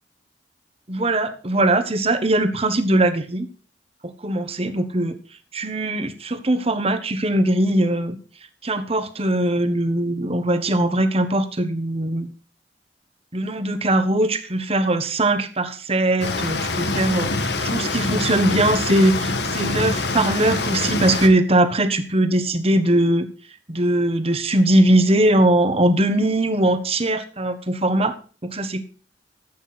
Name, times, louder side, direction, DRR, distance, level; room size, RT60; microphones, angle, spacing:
voice 1, 0.9-3.5 4.0-5.2 5.5-8.2 8.6-12.3 13.3-17.3 17.6-23.3 23.7-28.1 28.4-28.8, right 1 dB, 35° right, 10 dB, 1.4 m, -20 dB
sound 1, 16.2-21.3, left 3 dB, 70° left, 1.6 m, -25 dB
13.5 x 8.5 x 4.2 m, 0.38 s
head